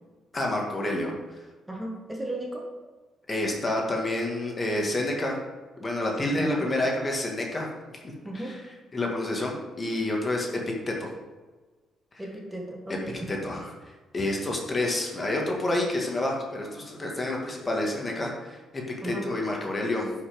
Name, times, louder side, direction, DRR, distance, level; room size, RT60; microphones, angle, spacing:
voice 1, 0.3-1.4 3.3-5.4 5.8-7.7 8.4-8.6 8.9-10.5 10.9-11.1 13.3-13.7 14.1-20.1, left 1 dB, 30° left, 0 dB, 2.0 m, -28 dB
voice 2, 1.7-2.6 6.4-6.7 8.2-8.6 12.2-13.3 19.0-19.3, right 1 dB, 10° right, 0 dB, 1.7 m, -35 dB
9.7 x 5.8 x 5.3 m, 1.3 s
cardioid pair, 90°, 0 cm